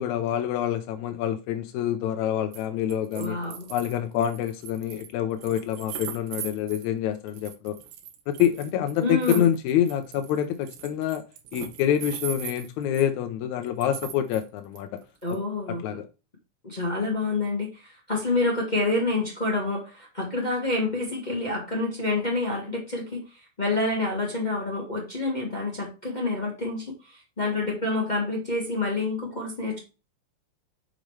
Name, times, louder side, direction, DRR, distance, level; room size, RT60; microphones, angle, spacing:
voice 1, 0.0-3.4 3.7-7.8 8.3-11.2 11.5-15.0 15.8-16.1, left 10 dB, 80° left, 7 dB, 1.7 m, -26 dB
sound 1, 2.5-2.6 2.9-6.9 7.3-13.1 13.6-14.4 14.8-15.4, right 9 dB, 80° right, 2.5 m, -39 dB
voice 2, 3.1-3.7 9.0-9.5 15.2-16.0 16.6-29.8, left 2 dB, 50° left, -2 dB, 0.5 m, -28 dB
6.3 x 5.0 x 3.2 m, 0.30 s
omnidirectional pair, 4.0 m